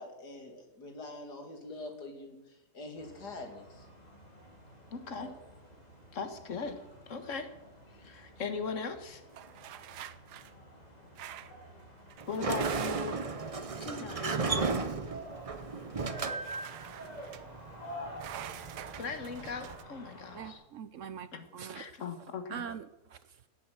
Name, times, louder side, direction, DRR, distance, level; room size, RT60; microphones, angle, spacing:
voice 1, 0.0-3.9 5.2-5.4, left 2 dB, 90° left, 4 dB, 3.0 m, -45 dB
sound 1, 3.0-20.5, equal, 25° left, 3.2 m, -50 dB
voice 2, 4.9-5.3 6.1-7.5 8.0-9.2 12.3-13.3 13.8-14.8 19.0-20.6 21.3-21.4 21.7-22.6, left 5 dB, 50° left, 8 dB, 1.8 m, -39 dB
sound 2, 9.3-10.5 11.2-11.6 12.1-13.3 16.4-17.4 18.2-19.8, right 11 dB, 85° right, 1.3 m, -46 dB
Sliding door, 12.2-19.7, right 4 dB, 35° right, 0.6 m, -35 dB
voice 3, 20.3-21.9 22.5-23.5, right 7 dB, 60° right, 13 dB, 0.9 m, -43 dB
17.5 x 7.8 x 7.6 m, 0.97 s
omnidirectional pair, 1.7 m